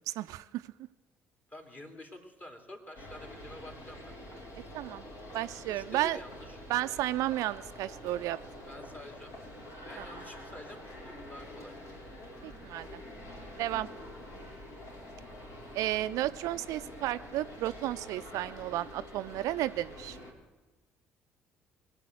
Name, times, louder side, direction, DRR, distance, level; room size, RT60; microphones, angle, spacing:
voice 1, 0.1-0.6 4.7-5.0 5.3-6.2 6.7-8.4 10.0-10.1 12.4-13.0 13.6-13.9 15.7-20.2, right 15 dB, 65° right, 13 dB, 0.4 m, -33 dB
voice 2, 1.5-4.1 5.7-6.6 8.7-9.3 9.8-11.7, left 1 dB, 25° left, 4 dB, 3.1 m, -48 dB
sound 1, 2.9-20.3, left 1 dB, 60° left, 3.4 m, -47 dB
21.5 x 7.4 x 8.0 m, 1.2 s
hypercardioid pair, 50°, 6 cm